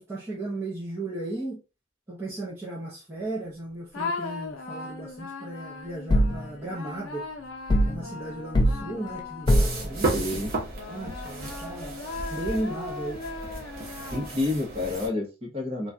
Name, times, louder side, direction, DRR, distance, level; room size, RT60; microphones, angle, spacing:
voice 1, 0.0-1.6 2.1-7.3 7.8-10.3 10.9-11.9 12.3-13.2, right 2 dB, 10° right, -6 dB, 0.7 m, -35 dB
sound 1, 3.9-10.2 10.7-14.7, left 4 dB, 85° left, 0.6 m, -38 dB
sound 2, 6.1-6.4 7.7-8.0 8.5-8.8 9.5-9.8, equal, 20° left, 0.3 m, -20 dB
sound 3, 9.5-15.1, right 2 dB, 50° right, 0.9 m, -34 dB
voice 2, 10.1-10.5 14.1-15.9, left 2 dB, 30° right, -2 dB, 1.1 m, -29 dB
3.1 x 2.3 x 2.5 m, 0.30 s
head